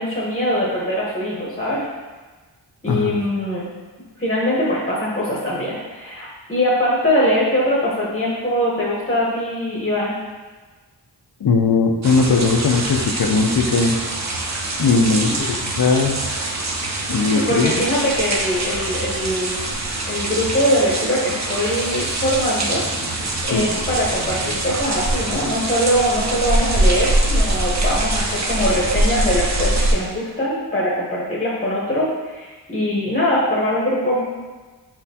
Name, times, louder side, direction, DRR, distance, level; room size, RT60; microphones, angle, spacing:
voice 1, 0.0-1.9 2.8-3.7 4.2-10.1 15.1-15.4 17.3-19.7 20.1-22.9 23.4-34.2, equal, 20° left, -6 dB, 1.0 m, -22 dB
voice 2, 2.9-3.2 11.4-14.0 14.8-16.2 17.1-17.7 23.5-23.7, left 4 dB, 55° left, 4 dB, 0.6 m, -18 dB
sound 1, 12.0-29.9, right 2 dB, 40° right, 0.6 m, -23 dB
sound 2, 21.6-27.0, left 1 dB, 80° left, 1.0 m, -39 dB
4.3 x 4.2 x 2.8 m, 1.3 s
wide cardioid pair, 60°, 43 cm